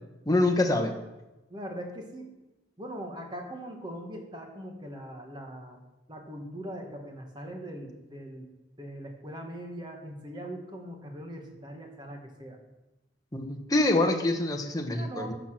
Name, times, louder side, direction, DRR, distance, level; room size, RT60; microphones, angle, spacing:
voice 1, 0.3-1.0 13.3-15.3, left 2 dB, 20° left, 3 dB, 1.1 m, -25 dB
voice 2, 1.5-2.3 2.8-5.8 6.1-12.6 15.0-15.3, equal, 25° right, 2 dB, 1.7 m, -41 dB
12.5 x 6.0 x 6.2 m, 1.0 s
head